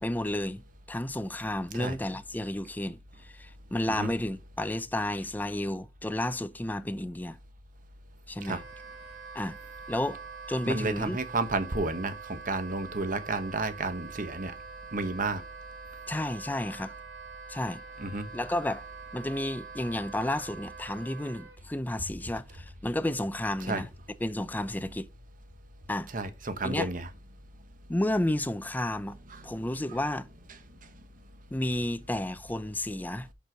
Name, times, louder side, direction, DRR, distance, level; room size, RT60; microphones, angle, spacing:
voice 1, 0.0-7.4 8.3-8.6 9.3-9.6 9.9-10.2 10.5-11.2 16.1-16.9 17.5-17.8 18.3-18.8 19.1-23.9 24.2-25.1 25.9-26.1 26.6-26.9 27.9-29.2 29.4-30.3 31.5-33.3, left 1 dB, 10° left, 0.5 m, -32 dB
Wind instrument woodwind instrument, 8.4-21.6, right 5 dB, 70° right, 2.6 m, -45 dB
voice 2, 10.6-14.5 14.9-15.4 18.0-18.3 23.6-23.8 26.1-27.1 29.3-29.6 30.7-31.0, right 3 dB, 50° right, 1.1 m, -32 dB
6.1 x 5.3 x 5.1 m
head